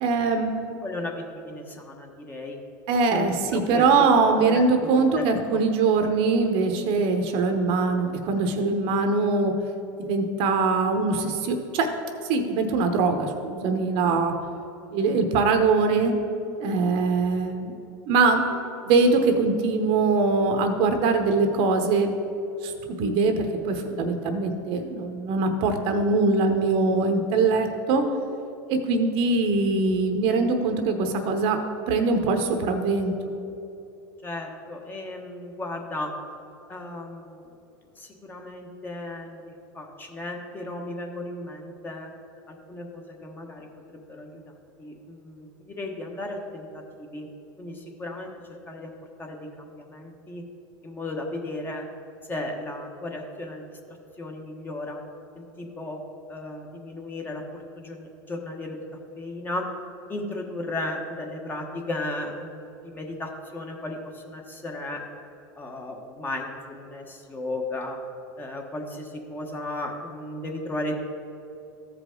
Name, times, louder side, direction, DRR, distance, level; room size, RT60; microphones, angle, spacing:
voice 1, 0.0-0.7 2.9-9.5 10.1-11.9 12.3-14.3 14.9-16.1 16.6-17.7 18.1-18.6 18.8-22.1 22.6-22.7 23.0-28.1 28.7-33.3, right 4 dB, 55° right, 6 dB, 0.9 m, -22 dB
voice 2, 0.8-2.6 3.1-3.8 4.4-4.7 4.9-5.2 34.2-36.1 36.7-37.4 38.0-42.1 42.5-43.7 44.1-44.3 44.8-47.3 47.6-48.3 48.7-48.9 49.2-50.4 50.8-51.8 52.3-53.7 54.2-55.0 55.6-56.0 56.3-57.4 57.7-58.8 59.2-59.7 60.1-64.0 64.3-65.0 65.6-68.0 68.4-71.0, left 2 dB, 20° left, 1 dB, 1.2 m, -35 dB
14.0 x 5.1 x 3.8 m, 2.8 s
supercardioid pair, 115°, 11 cm